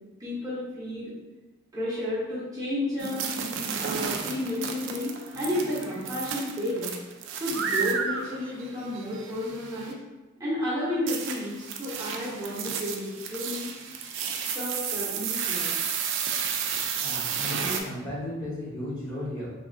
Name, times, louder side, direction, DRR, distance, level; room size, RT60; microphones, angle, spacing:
voice 1, 0.2-1.1 1.7-3.2 3.8-6.9 7.4-10.0 10.4-13.7 14.5-15.7, left 1 dB, 15° right, -9 dB, 0.8 m, -32 dB
sound 1, 3.0-9.9 11.1-17.8, right 6 dB, 60° right, 0.3 m, -32 dB
voice 2, 17.0-19.5, left 1 dB, 20° left, -9 dB, 0.8 m, -35 dB
3.2 x 2.4 x 2.5 m, 1.1 s
head